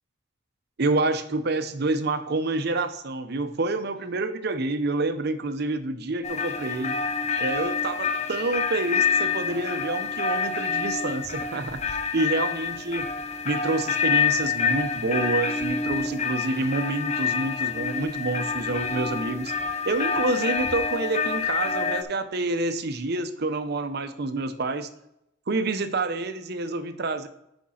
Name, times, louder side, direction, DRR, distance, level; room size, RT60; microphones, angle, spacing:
voice 1, 0.8-6.9 7.4-11.8 12.1-13.1 13.4-19.5 19.9-24.9 25.5-27.3, right 2 dB, 55° right, 9 dB, 0.7 m, -28 dB
sound 1, 6.2-22.0, left 5 dB, 35° left, 0.6 m, -27 dB
6.3 x 5.3 x 5.7 m, 0.81 s
head